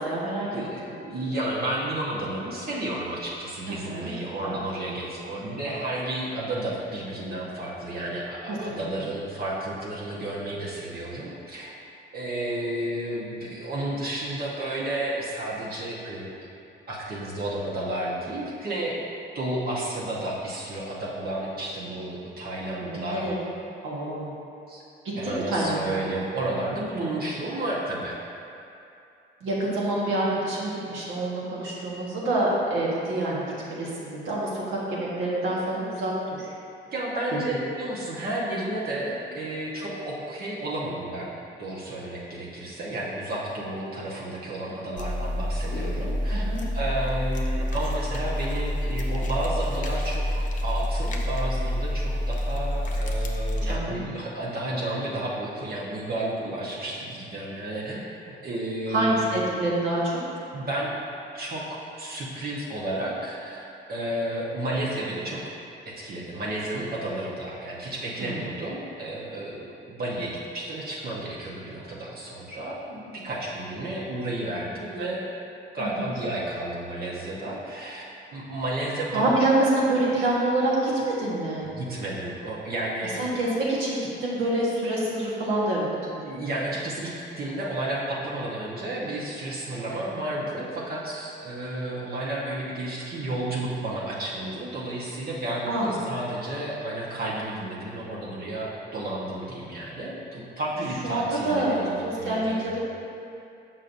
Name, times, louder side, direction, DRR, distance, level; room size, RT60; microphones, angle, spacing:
voice 1, 0.0-0.5 3.7-4.1 4.4-4.6 8.7-9.1 22.7-23.4 23.8-24.3 25.2-26.0 29.4-36.5 46.3-46.6 53.6-54.1 58.9-60.2 68.2-68.4 75.8-76.0 79.1-80.9 81.2-81.6 83.2-86.2 95.7-95.9 101.0-102.8, right 1 dB, 85° right, -6 dB, 1.4 m, -27 dB
voice 2, 0.5-11.7 12.1-16.3 16.9-19.0 19.3-23.3 24.7-24.8 25.2-28.2 36.9-41.3 41.6-46.4 46.7-59.4 60.5-61.0 61.3-65.4 65.8-75.3 75.7-78.0 78.3-79.3 81.7-83.2 86.2-102.7, right 1 dB, 50° right, -5 dB, 1.0 m, -32 dB
sound 1, 45.0-53.8, equal, 40° left, 0.7 m, -28 dB
6.4 x 5.7 x 2.6 m, 2.7 s
cardioid pair, 90°, 20 cm